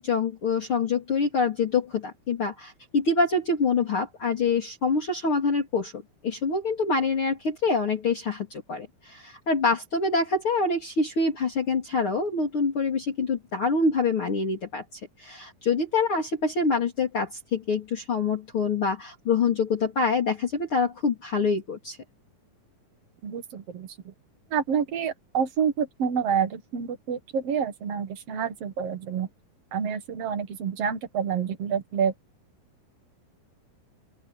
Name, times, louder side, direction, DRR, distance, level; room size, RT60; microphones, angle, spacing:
voice 1, 0.0-22.0, left 4 dB, 40° left, 4.1 m, -26 dB
voice 2, 23.2-24.1 24.5-29.3 29.7-32.1, right 7 dB, 55° right, 2.3 m, -28 dB
open air
omnidirectional pair, 3.9 m